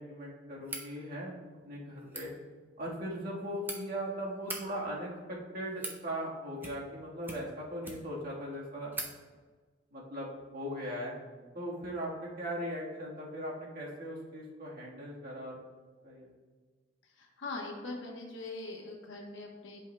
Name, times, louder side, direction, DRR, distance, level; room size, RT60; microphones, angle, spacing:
voice 1, 0.0-1.4 1.6-2.3 2.8-8.9 9.9-11.1 11.5-15.6 16.0-16.3, equal, 50° right, -3 dB, 1.5 m, -39 dB
sound 1, 0.6-0.9 2.0-2.3 3.2-3.8 4.3-4.6 5.4-6.0 6.6-7.0 7.2-8.2 8.5-8.6 8.9-9.1, right 2 dB, 10° right, 0.8 m, -41 dB
voice 2, 17.0-19.9, left 2 dB, 75° left, 0 dB, 1.1 m, -42 dB
10.5 x 5.4 x 2.2 m, 1.4 s
head